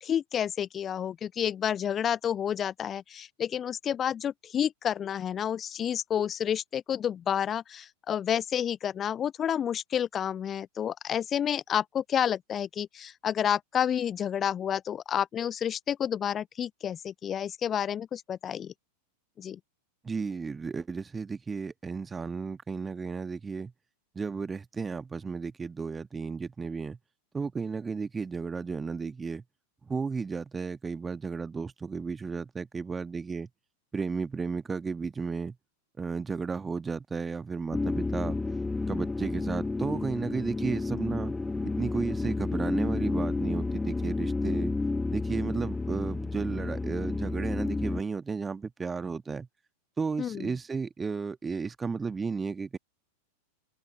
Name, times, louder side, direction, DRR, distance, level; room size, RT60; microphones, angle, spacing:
voice 1, 0.0-18.7 19.4-19.6 50.2-50.6, left 9 dB, 25° left, 0.6 m, -30 dB
voice 2, 20.0-23.7 24.1-27.0 27.3-29.4 29.9-33.5 33.9-35.5 36.0-38.4 38.9-41.3 41.6-44.7 45.1-49.5 50.0-52.8, right 5 dB, 15° right, 1.6 m, -33 dB
sound 1, 37.7-48.0, left 3 dB, 10° left, 1.4 m, -31 dB
open air
figure-of-eight pair, 90°, 0 cm